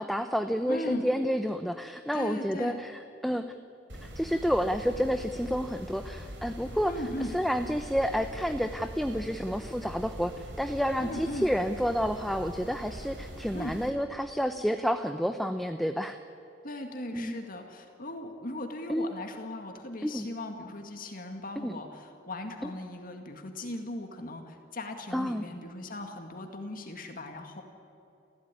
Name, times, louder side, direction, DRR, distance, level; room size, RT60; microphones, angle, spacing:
voice 1, 0.0-3.4 4.0-6.9 7.2-16.2 17.1-17.4 18.9-19.1 20.0-20.3 21.6-21.7 22.6-22.7 25.1-25.4, equal, ahead, 8 dB, 0.7 m, -30 dB
voice 2, 0.7-1.1 2.1-2.8 6.9-7.4 11.0-11.5 13.5-13.8 16.6-27.6, left 1 dB, 50° left, 5 dB, 2.0 m, -38 dB
sound 1, 3.9-13.9, equal, 65° right, 4.1 m, -43 dB
30.0 x 15.5 x 9.8 m, 2.7 s
head